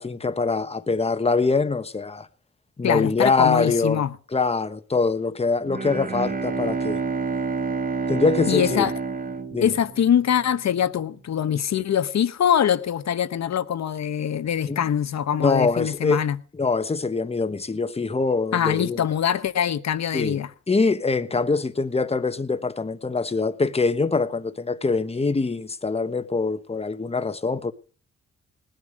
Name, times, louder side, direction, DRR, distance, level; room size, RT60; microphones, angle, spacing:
voice 1, 0.0-2.3 2.8-4.0 4.3-7.0 8.1-8.9 9.5-9.7 14.7-14.8 15.4-16.2 16.6-19.0 20.1-20.4 20.7-27.7, left 4 dB, 20° left, 1.1 m, -24 dB
voice 2, 2.8-4.1 8.5-8.9 9.6-16.4 18.5-20.5, left 9 dB, 65° left, 1.1 m, -23 dB
Bowed string instrument, 5.6-10.5, right 4 dB, 30° right, 1.2 m, -28 dB
19.0 x 11.0 x 5.2 m
cardioid pair, 90°, 30 cm